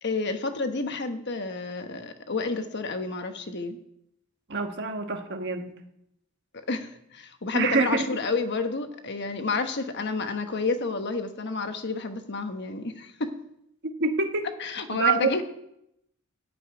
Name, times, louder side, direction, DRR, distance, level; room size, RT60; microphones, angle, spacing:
voice 1, 0.0-3.8 6.5-13.3 14.6-15.4, left 3 dB, 55° left, 7 dB, 1.1 m, -30 dB
voice 2, 4.5-5.7 7.5-8.1 14.0-14.4 14.9-15.3, right 4 dB, 55° right, 5 dB, 1.4 m, -26 dB
13.0 x 5.5 x 9.2 m, 0.79 s
head